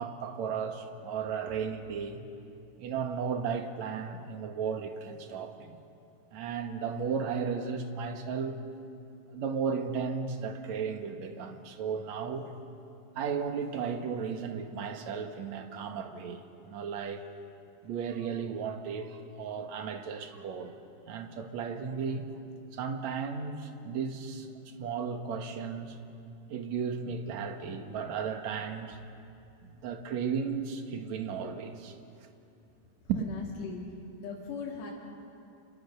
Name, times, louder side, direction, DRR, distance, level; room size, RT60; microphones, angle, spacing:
voice 1, 0.0-2.2 2.8-5.8 6.3-8.6 9.3-12.5 13.2-17.3 17.8-20.7 21.1-22.2 22.7-26.0 26.5-29.0 29.6-32.0 33.1-33.3, right 6 dB, 55° right, 5 dB, 2.3 m, -35 dB
voice 2, 33.1-33.8 34.2-34.9, left 5 dB, 80° left, -5 dB, 5.0 m, -39 dB
29.0 x 29.0 x 6.9 m, 2.6 s
omnidirectional pair, 4.9 m